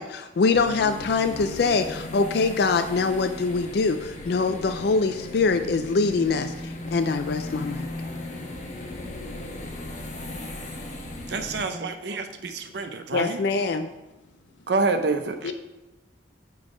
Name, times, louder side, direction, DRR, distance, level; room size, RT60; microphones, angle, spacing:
voice 1, 0.0-7.9 13.1-13.9, left 4 dB, 55° left, 8 dB, 0.3 m, -24 dB
sound 1, 0.5-11.7, left 1 dB, 35° left, 1.1 m, -37 dB
voice 2, 11.3-13.4 14.7-15.4, right 3 dB, 60° right, 7 dB, 0.5 m, -27 dB
voice 3, 12.2-13.2 14.3-14.7 15.4-15.5, left 5 dB, 70° left, 7 dB, 0.7 m, -42 dB
8.9 x 3.8 x 4.9 m, 1.0 s
head